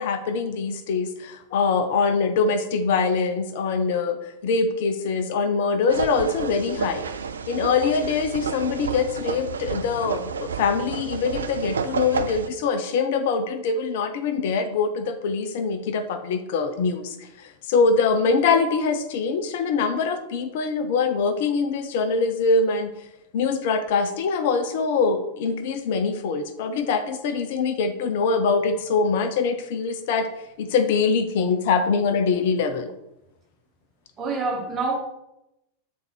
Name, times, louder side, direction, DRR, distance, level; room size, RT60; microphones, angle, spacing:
voice 1, 0.0-7.1 7.5-22.9 23.3-30.3 30.6-32.9, left 4 dB, 50° left, 8 dB, 0.6 m, -23 dB
sound 1, 5.9-12.5, right 6 dB, 70° right, 0.4 m, -30 dB
voice 2, 34.2-34.9, right 3 dB, 25° right, 0 dB, 1.7 m, -26 dB
7.5 x 3.9 x 4.4 m, 0.86 s
figure-of-eight pair, 90°, 0 cm